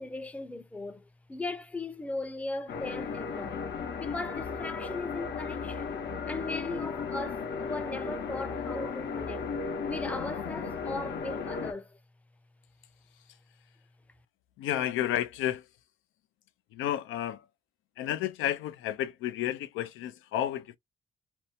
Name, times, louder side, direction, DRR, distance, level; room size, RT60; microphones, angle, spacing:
voice 1, 0.0-3.6 4.0-9.4 9.8-12.0, left 2 dB, 5° left, 0.5 m, -38 dB
sound 1, 2.7-11.7, left 5 dB, 60° left, 0.8 m, -35 dB
voice 2, 14.6-15.6 16.7-17.4 18.0-20.8, left 12 dB, 85° left, 0.5 m, -31 dB
2.7 x 2.1 x 2.7 m
cardioid pair, 90°, 20 cm